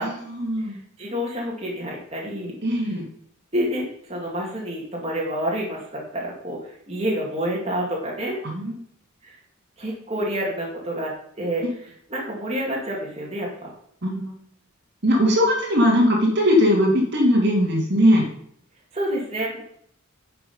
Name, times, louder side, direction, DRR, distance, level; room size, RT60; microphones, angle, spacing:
voice 1, 0.0-0.8 2.6-3.0 8.4-8.8 11.6-11.7 14.0-14.4 15.0-18.3, equal, 50° right, -1 dB, 2.2 m, -20 dB
voice 2, 0.6-2.6 3.5-8.4 9.2-9.4 9.8-11.6 12.1-13.7 18.9-19.6, equal, 30° right, -3 dB, 2.3 m, -28 dB
10.0 x 5.9 x 5.5 m, 0.67 s
head